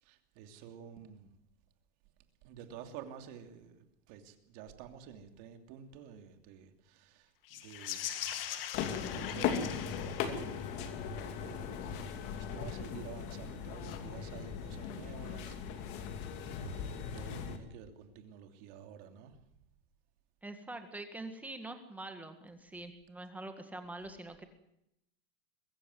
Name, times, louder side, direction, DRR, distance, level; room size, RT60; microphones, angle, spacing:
voice 1, 0.0-1.3 2.4-16.0 16.3-19.4, right 8 dB, 45° right, 2.9 m, -51 dB
sound 1, 7.4-11.0 13.8-14.0, left 11 dB, 75° left, 2.4 m, -41 dB
sound 2, 8.7-17.6, left 7 dB, 40° left, 2.6 m, -38 dB
voice 2, 20.4-24.4, right 2 dB, 5° right, 1.8 m, -45 dB
22.5 x 15.0 x 9.6 m
supercardioid pair, 165°, 29 cm